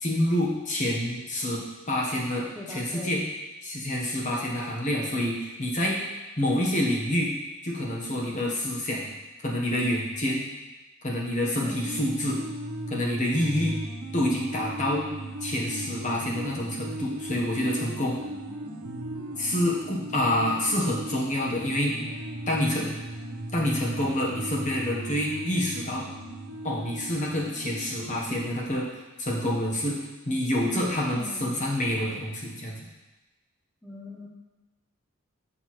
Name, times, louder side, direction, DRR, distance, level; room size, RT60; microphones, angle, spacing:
voice 1, 0.0-3.2 3.6-6.0 6.4-7.3 7.6-9.2 9.4-10.4 11.0-12.4 12.9-13.8 14.1-15.1 15.4-18.2 19.4-22.0 22.5-22.9 23.5-26.1 26.6-28.8 29.2-30.0 30.2-32.9, left 1 dB, 35° left, -2 dB, 1.1 m, -27 dB
voice 2, 2.5-3.3 11.6-11.9 18.2-18.8 22.1-22.2 31.1-31.6 33.8-34.3, left 1 dB, ahead, -5 dB, 0.6 m, -42 dB
sound 1, 11.4-28.6, right 1 dB, 80° right, 0.6 m, -37 dB
6.3 x 5.9 x 3.2 m, 1.1 s
head